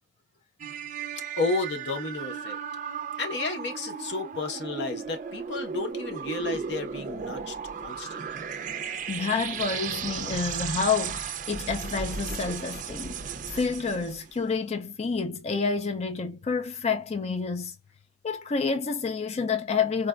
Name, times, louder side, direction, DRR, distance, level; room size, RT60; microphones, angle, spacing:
sound 1, 0.6-14.3, right 6 dB, 45° right, 0.4 m, -35 dB
voice 1, 1.4-2.6 3.2-8.5, left 3 dB, 80° left, 0.8 m, -32 dB
voice 2, 9.1-17.8 18.2-20.1, left 5 dB, 35° left, 0.4 m, -29 dB
4.0 x 2.2 x 2.2 m
head